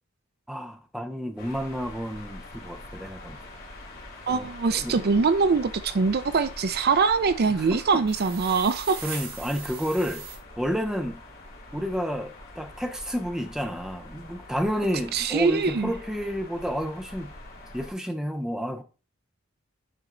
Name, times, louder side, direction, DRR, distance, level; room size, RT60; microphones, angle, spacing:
voice 1, 0.5-3.4 4.3-5.0 7.6-8.0 9.0-10.3 10.6-11.2 11.7-17.3 17.7-18.8, equal, 5° right, 0.7 m, -30 dB
sound 1, 1.4-17.9, left 2 dB, 50° left, 2.4 m, -44 dB
voice 2, 4.3-9.0 15.1-15.9, right 4 dB, 50° right, 0.5 m, -23 dB
sound 2, 8.1-10.4, right 5 dB, 90° right, 4.5 m, -39 dB
9.2 x 4.1 x 3.8 m
head